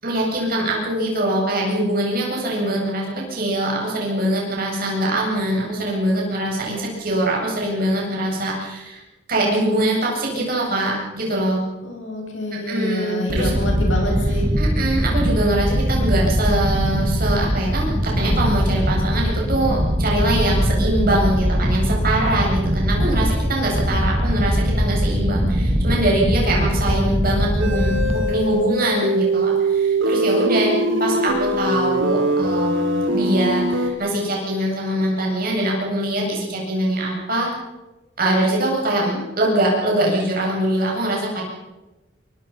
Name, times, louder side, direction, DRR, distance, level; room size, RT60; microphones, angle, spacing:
voice 1, 0.0-9.0 9.3-11.6 12.5-13.5 14.6-37.5 38.2-41.4, right 1 dB, 50° right, -2 dB, 7.9 m, -23 dB
voice 2, 11.8-14.5 26.7-27.2 30.6-31.2 39.0-39.2, left 1 dB, 75° left, 0 dB, 7.6 m, -28 dB
sound 1, 13.3-28.4, equal, 30° right, 2.3 m, -21 dB
sound 2, 27.6-33.9, right 1 dB, 85° right, 3.3 m, -22 dB
24.0 x 24.0 x 5.8 m, 1.1 s
head